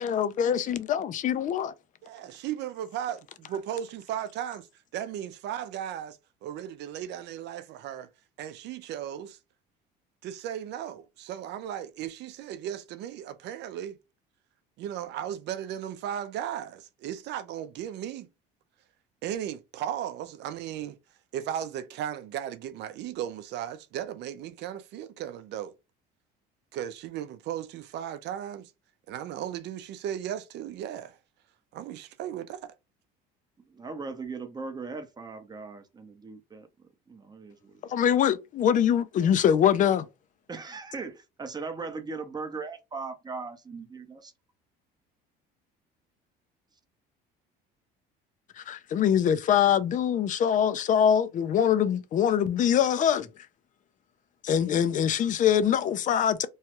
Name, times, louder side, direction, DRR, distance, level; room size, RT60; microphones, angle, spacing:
voice 1, 0.0-1.7 37.9-40.1 48.6-53.3 54.4-56.5, left 9 dB, 40° left, 0.5 m, -23 dB
voice 2, 2.0-4.7 4.9-8.1 8.4-9.4 10.2-14.0 14.8-18.3 19.2-21.0 21.3-25.7 26.7-28.7 29.1-31.2 31.7-32.7, right 10 dB, 60° right, 0.5 m, -36 dB
voice 3, 33.7-36.7 37.1-37.8 40.5-44.3, right 4 dB, 20° right, 0.6 m, -38 dB
3.1 x 2.3 x 2.9 m
cardioid pair, 110°, 20 cm